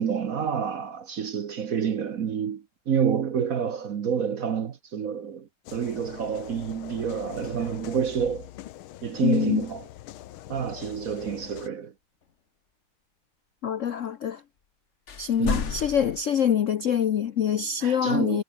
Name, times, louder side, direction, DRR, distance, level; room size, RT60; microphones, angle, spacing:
voice 1, 0.0-8.5 9.0-9.8 10.5-11.9 15.4-15.7 17.8-18.4, right 7 dB, 50° right, 1.2 m, -28 dB
sound 1, 5.7-11.7, left 14 dB, 80° left, 1.7 m, -43 dB
voice 2, 9.2-9.7 13.6-14.4 15.2-18.4, left 8 dB, 65° left, 0.7 m, -25 dB
sound 2, 15.1-16.2, left 7 dB, 40° left, 1.3 m, -31 dB
omnidirectional pair, 2.3 m